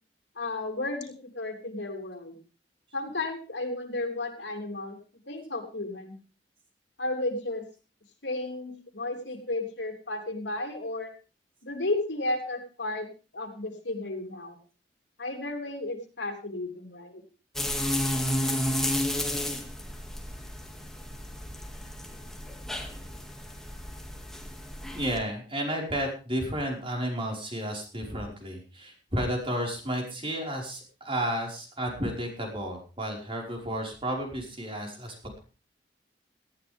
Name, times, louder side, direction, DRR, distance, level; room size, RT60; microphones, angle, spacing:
voice 1, 0.3-2.4 2.9-5.0 5.3-6.1 7.0-7.6 8.2-11.1 11.6-13.1 13.3-14.6 15.2-17.2, left 2 dB, 80° left, 3 dB, 3.3 m, -33 dB
sound 1, 17.5-25.2, left 1 dB, 5° left, 2.3 m, -32 dB
voice 2, 24.9-35.4, equal, 30° right, 0 dB, 5.2 m, -32 dB
18.5 x 13.5 x 3.6 m, 0.35 s
head